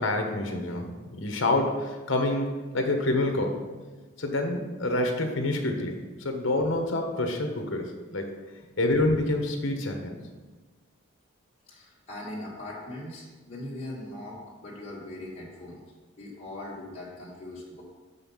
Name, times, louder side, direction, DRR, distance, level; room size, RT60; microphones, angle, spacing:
voice 1, 0.0-2.5 2.7-3.6 4.2-8.3 8.8-10.1, left 2 dB, 60° left, 4 dB, 1.1 m, -27 dB
voice 2, 11.7-15.8 16.2-17.8, left 1 dB, 30° left, -8 dB, 1.9 m, -40 dB
6.7 x 5.5 x 5.6 m, 1.3 s
head